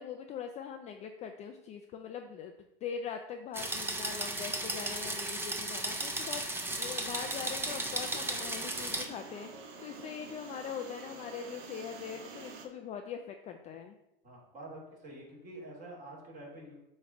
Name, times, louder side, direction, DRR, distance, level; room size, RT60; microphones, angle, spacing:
voice 1, 0.0-2.5 2.8-14.0, left 7 dB, 25° left, 5 dB, 0.4 m, -42 dB
sound 1, 3.5-9.0, right 2 dB, 10° right, 0.7 m, -35 dB
sound 2, 7.0-12.7, right 4 dB, 60° right, 1.3 m, -48 dB
voice 2, 14.2-16.7, right 1 dB, 25° right, -3 dB, 2.8 m, -47 dB
7.5 x 3.2 x 5.8 m, 0.88 s
hypercardioid pair, 120°, 30 cm